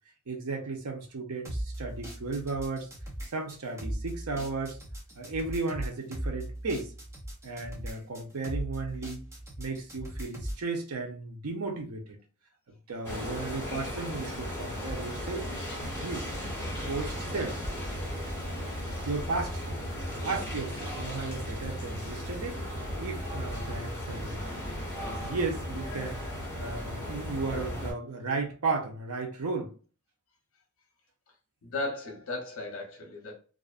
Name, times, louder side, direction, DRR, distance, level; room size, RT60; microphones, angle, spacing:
voice 1, 0.3-2.9 3.3-4.8 5.2-6.9 7.4-9.3 9.6-12.2 12.9-15.6 16.0-16.3 16.9-17.6 19.0-19.8 20.2-22.6 23.0-24.4 25.0-26.2 26.6-29.7, right 3 dB, 90° right, 0.7 m, -34 dB
sound 1, 1.4-10.7, right 1 dB, 15° right, 0.6 m, -38 dB
sound 2, 13.0-27.9, equal, 10° left, 0.8 m, -36 dB
voice 2, 31.6-33.4, left 2 dB, 65° left, 0.8 m, -36 dB
2.5 x 2.1 x 2.4 m
head